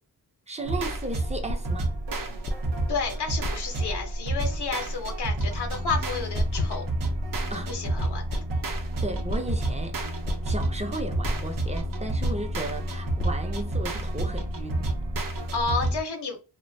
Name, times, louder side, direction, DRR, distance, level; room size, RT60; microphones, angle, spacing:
voice 1, 0.5-1.9 7.5-7.7 9.0-9.9 10.3-14.9, right 2 dB, 15° right, 0.6 m, -35 dB
sound 1, 0.6-15.7, right 1 dB, 25° left, 0.5 m, -35 dB
sound 2, 0.6-15.7, right 4 dB, 85° right, 0.5 m, -48 dB
sound 3, 0.7-16.0, right 1 dB, 55° right, 0.7 m, -30 dB
voice 2, 2.9-6.8 7.7-8.4 15.5-16.4, left 4 dB, 70° left, 0.8 m, -31 dB
2.4 x 2.2 x 2.6 m
cardioid pair, 70°, 41 cm